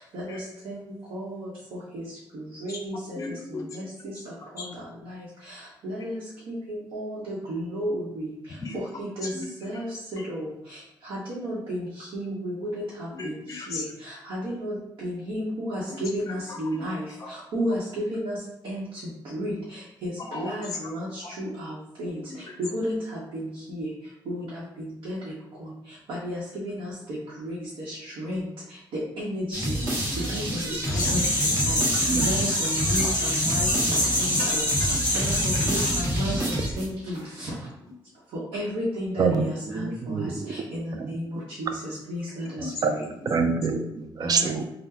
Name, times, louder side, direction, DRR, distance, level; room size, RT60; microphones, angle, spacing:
voice 1, 1.1-1.5 1.9-2.0 2.6-3.0 3.8-3.9 4.5-4.6 5.8-6.2 6.5-6.6 6.9-8.3 9.0-9.3 9.6-9.9 10.1-10.5 11.1-11.8 12.1-12.8 13.7-13.8 14.3-14.8 15.0-17.0 17.5-17.8 18.1-18.4 18.6-18.8 19.3-19.5 20.0-20.1 20.3-21.1 21.4-21.7 22.0-22.2 22.7-23.0 23.3-23.9 24.3-25.2 26.1-26.9 27.4-27.6 27.9-28.4 29.2-29.7 30.3-30.6 30.9-31.2 31.6-31.8 32.2-34.6 35.1-37.5 38.5-40.2 40.5-41.7 42.1-42.5 44.2-44.6, equal, 80° right, -8 dB, 0.9 m, -32 dB
voice 2, 3.1-3.6 4.6-4.7 8.6-8.8 9.2-9.5 9.7-9.8 13.1-13.9 15.9-16.0 16.3-16.9 17.2-17.3 20.2-20.5 22.2-22.4 30.8-31.3 32.2-32.4 33.0-33.1 37.8-37.9 42.8-43.4 44.6-44.7, left 3 dB, 40° left, 2 dB, 0.5 m, -36 dB
sound 1, 29.5-37.2, equal, 25° right, 1.2 m, -29 dB
sound 2, 31.0-36.0, left 1 dB, 10° left, 1.0 m, -25 dB
voice 3, 39.2-40.5 40.9-41.1 41.4-41.5 42.8-42.9 43.3-44.6, right 5 dB, 50° right, 7 dB, 0.4 m, -26 dB
3.8 x 2.2 x 2.8 m, 0.83 s
cardioid pair, 90°, 9 cm